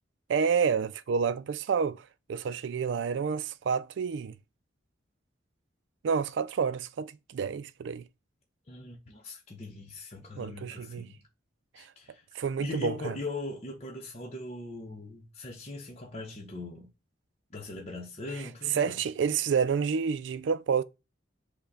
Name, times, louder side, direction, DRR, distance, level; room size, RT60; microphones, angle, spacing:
voice 1, 0.3-4.3 6.0-8.0 10.4-11.0 11.8-11.9 12.3-13.2 18.7-20.8, right 6 dB, 65° right, 0.3 m, -29 dB
voice 2, 8.7-11.2 11.7-12.2 12.6-16.9 17.5-19.0, left 2 dB, 35° left, 0.8 m, -40 dB
5.6 x 2.2 x 3.9 m
head